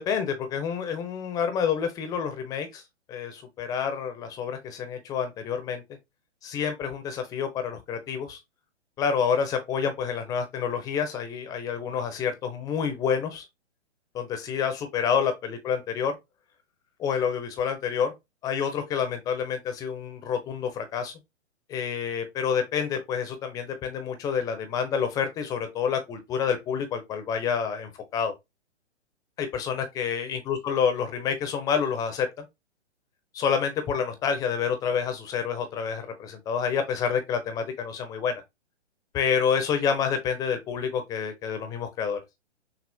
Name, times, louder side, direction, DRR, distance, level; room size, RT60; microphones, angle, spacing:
voice 1, 0.0-2.8 3.1-5.8 6.4-8.4 9.0-13.4 14.1-16.1 17.0-18.1 18.4-21.1 21.7-28.3 29.4-32.5 33.3-38.4 39.1-42.2, left 7 dB, 10° left, 0.6 m, -28 dB
6.2 x 2.4 x 3.4 m
figure-of-eight pair, 125°, 35 cm